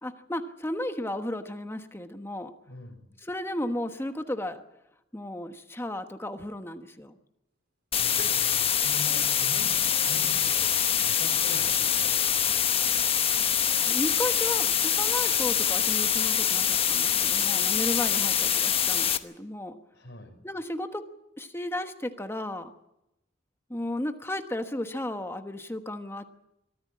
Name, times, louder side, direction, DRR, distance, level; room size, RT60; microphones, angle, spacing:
voice 1, 0.0-2.5 3.2-4.6 5.1-7.2 13.9-19.8 20.4-21.0 21.4-22.7 23.7-26.3, left 1 dB, 15° left, 7 dB, 1.2 m, -34 dB
voice 2, 2.7-3.0 8.0-12.9 19.9-20.3, left 1 dB, 65° left, 4 dB, 4.9 m, -44 dB
sound 1, 7.5-7.6 7.8-13.0, right 2 dB, 60° right, 4.9 m, -53 dB
sound 2, 7.9-19.2, left 8 dB, 30° left, 1.0 m, -25 dB
24.0 x 14.5 x 8.6 m, 0.88 s
head